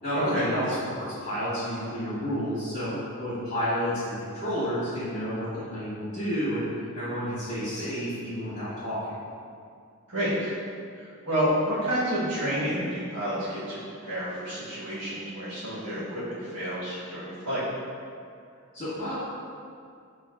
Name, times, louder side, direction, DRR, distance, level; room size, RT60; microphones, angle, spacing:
voice 1, 0.0-2.9 3.2-6.6 6.9-9.1 18.7-19.1, equal, 45° left, -13 dB, 1.1 m, -30 dB
voice 2, 10.1-10.6 11.0-17.6, equal, 85° right, -10 dB, 1.3 m, -29 dB
4.7 x 2.4 x 2.3 m, 2.3 s
head